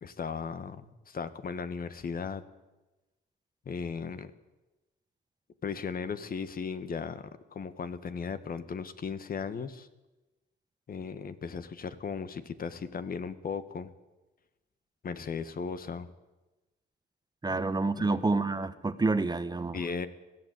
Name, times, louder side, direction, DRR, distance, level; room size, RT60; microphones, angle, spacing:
voice 1, 0.0-2.4 3.7-4.3 5.6-7.2 7.5-9.9 10.9-13.9 15.0-16.1 17.5-17.6 18.0-18.2 19.7-20.1, left 5 dB, 45° left, 12 dB, 1.7 m, -36 dB
voice 2, 17.4-19.8, right 3 dB, 20° right, 12 dB, 1.2 m, -28 dB
21.0 x 14.5 x 9.6 m, 1.1 s
cardioid pair, 90°, 20 cm